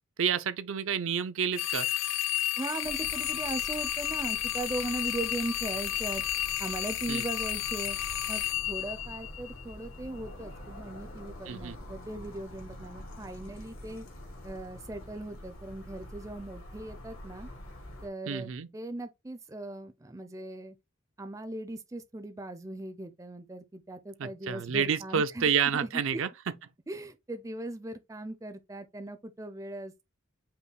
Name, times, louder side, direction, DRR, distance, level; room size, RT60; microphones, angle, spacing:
voice 1, 0.2-1.9 7.1-7.3 11.5-11.8 18.3-18.7 24.2-26.3, right 7 dB, 75° right, 0.5 m, -29 dB
sound 1, 1.5-9.7, left 13 dB, 65° left, 0.4 m, -32 dB
voice 2, 2.6-6.2 6.6-8.0 8.3-14.1 14.4-17.5 18.0-20.8 21.2-25.5 25.8-26.2 26.9-30.1, right 2 dB, 15° right, 0.4 m, -39 dB
sound 2, 2.8-18.1, left 1 dB, 85° left, 1.9 m, -46 dB
5.3 x 2.1 x 4.4 m
head